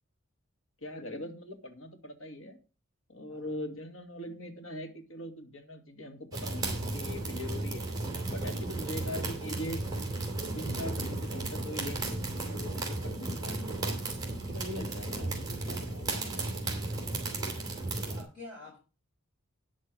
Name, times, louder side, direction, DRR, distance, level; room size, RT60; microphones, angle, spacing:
voice 1, 0.8-2.6 3.1-7.9 8.3-9.8 10.4-13.8 14.3-16.4, left 1 dB, 70° left, 4 dB, 2.3 m, -41 dB
sound 1, 6.3-18.2, right 2 dB, 15° right, 3.4 m, -34 dB
voice 2, 17.1-18.8, left 2 dB, ahead, -8 dB, 6.1 m, -50 dB
10.0 x 6.7 x 6.2 m, 0.32 s
head